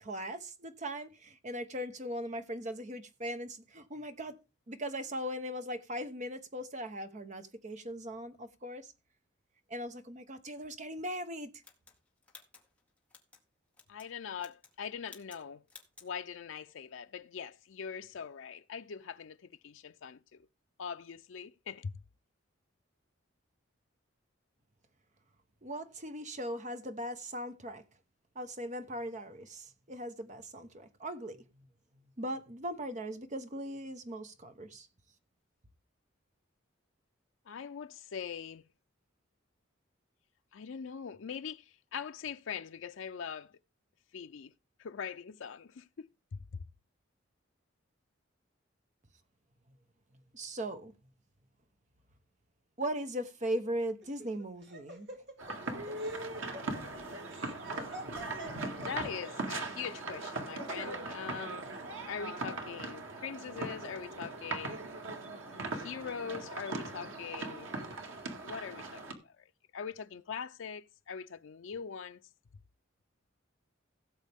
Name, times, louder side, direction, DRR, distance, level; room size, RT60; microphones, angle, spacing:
voice 1, 0.0-4.4 4.7-8.9 9.7-11.5 25.6-27.8 28.3-31.7 32.2-34.9 50.3-50.9 52.8-55.1, equal, 40° right, 1.1 m, -39 dB
sound 1, 11.6-13.4 13.7-14.1 14.4-14.8 15.1-15.4 15.7-16.1, left 4 dB, 5° left, 1.8 m, -55 dB
voice 2, 13.9-15.6 16.0-20.5 20.8-22.0 37.5-38.6 40.5-43.6 44.1-44.5 44.8-46.1 58.8-61.7 62.1-64.8 65.7-67.7 68.4-69.5 69.7-72.2, left 7 dB, 75° left, 0.5 m, -42 dB
Laughter, 54.0-59.5, equal, 60° right, 2.8 m, -47 dB
sound 2, 55.4-69.1, right 2 dB, 90° right, 2.0 m, -40 dB
16.5 x 7.3 x 3.5 m
head